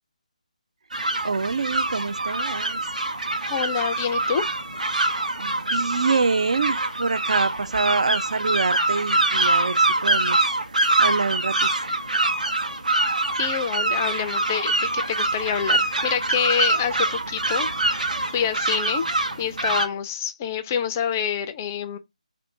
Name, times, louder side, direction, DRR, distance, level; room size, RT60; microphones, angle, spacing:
sound 1, 0.9-19.9, right 2 dB, 75° right, 0.9 m, -24 dB
voice 1, 1.2-2.8 5.0-10.4 10.8-11.8, right 4 dB, 60° right, 0.3 m, -26 dB
voice 2, 3.5-4.4 12.9-13.0 13.4-19.0 19.4-22.0, left 8 dB, 20° left, 0.3 m, -27 dB
3.5 x 2.4 x 4.5 m
figure-of-eight pair, 155°, 4 cm